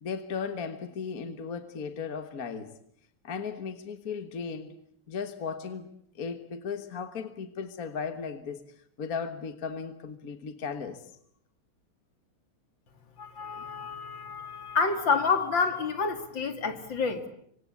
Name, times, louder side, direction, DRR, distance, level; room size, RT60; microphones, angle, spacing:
voice 1, 0.0-2.8 3.2-4.7 5.1-5.9 6.2-8.7 9.0-11.1, left 5 dB, 45° left, 10 dB, 1.7 m, -36 dB
voice 2, 13.2-17.2, left 4 dB, 60° left, 9 dB, 3.1 m, -28 dB
27.0 x 25.0 x 8.3 m, 0.66 s
omnidirectional pair, 2.3 m